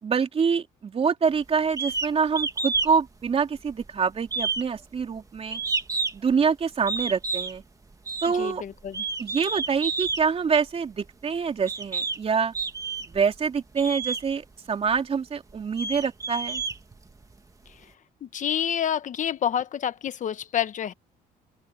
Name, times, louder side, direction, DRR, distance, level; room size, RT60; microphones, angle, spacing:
voice 1, 0.0-5.6 6.1-7.6 8.2-8.6 9.2-12.5 13.1-16.6, right 6 dB, 35° right, 3.3 m, -26 dB
sound 1, 1.8-2.1 2.4-2.9 3.3-3.9 4.3-6.3 6.9-7.6 8.1-8.3 8.9-10.2 11.1-11.2 11.7-12.2 12.5-13.2 13.8-14.2 14.9-15.0 15.5-17.3, right 4 dB, 20° right, 2.1 m, -29 dB
voice 2, 8.4-9.0 18.2-20.9, left 9 dB, 50° left, 1.2 m, -28 dB
open air
cardioid pair, 110°, 17 cm